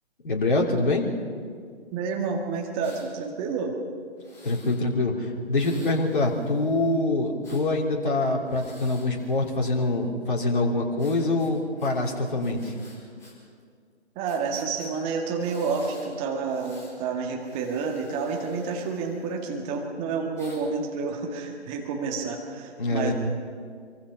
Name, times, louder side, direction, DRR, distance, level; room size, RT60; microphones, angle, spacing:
voice 1, 0.2-1.0 4.4-12.7 22.8-23.1, left 2 dB, 45° left, 0 dB, 3.4 m, -25 dB
voice 2, 1.9-3.8 14.2-23.1, right 5 dB, 15° right, 2 dB, 1.8 m, -29 dB
Breathing, 2.8-3.1 4.2-4.8 5.5-7.6 8.4-10.0 11.0-13.3 13.6-13.7 14.2-14.9 15.4-16.1 16.4-16.9 17.4-19.6 20.4-20.6, left 1 dB, 10° left, 4.6 m, -51 dB
25.0 x 23.5 x 5.6 m, 2.1 s
figure-of-eight pair, 140°, 34 cm